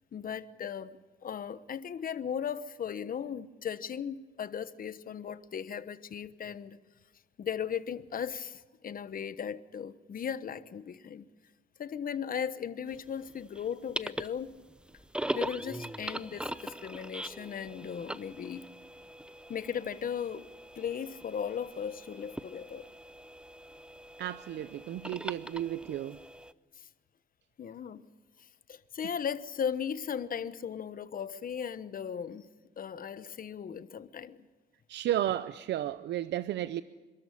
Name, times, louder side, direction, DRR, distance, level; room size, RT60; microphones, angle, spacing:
voice 1, 0.1-6.8 7.4-11.3 11.8-14.5 15.3-18.7 19.5-20.5 20.8-22.9 26.8-26.9 27.6-28.0 28.7-32.5 32.8-34.4, left 7 dB, 55° left, 1.1 m, -37 dB
sound 1, 12.9-26.5, right 1 dB, 5° right, 0.7 m, -41 dB
voice 2, 24.2-26.2 34.9-36.8, right 12 dB, 80° right, 0.6 m, -33 dB
26.5 x 13.0 x 9.9 m
cardioid pair, 95°, 18 cm